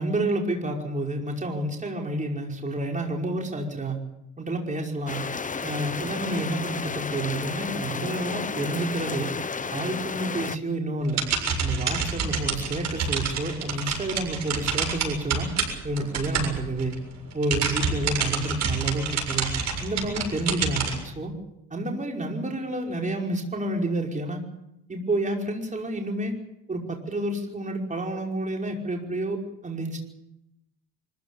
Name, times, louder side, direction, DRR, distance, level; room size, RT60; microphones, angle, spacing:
voice 1, 0.0-4.0 4.4-5.2 5.6-9.3 9.7-11.2 11.6-15.5 15.8-16.9 17.3-19.5 19.8-21.3 21.7-24.4 24.9-26.4 26.7-30.0, right 2 dB, 25° right, 1 dB, 5.2 m, -29 dB
sound 1, 5.1-10.6, left 5 dB, 25° left, 1.0 m, -32 dB
sound 2, 11.0-17.0 17.3-21.0, right 5 dB, 60° right, 7.3 m, -28 dB
24.5 x 15.5 x 8.9 m, 0.83 s
cardioid pair, 90°, 30 cm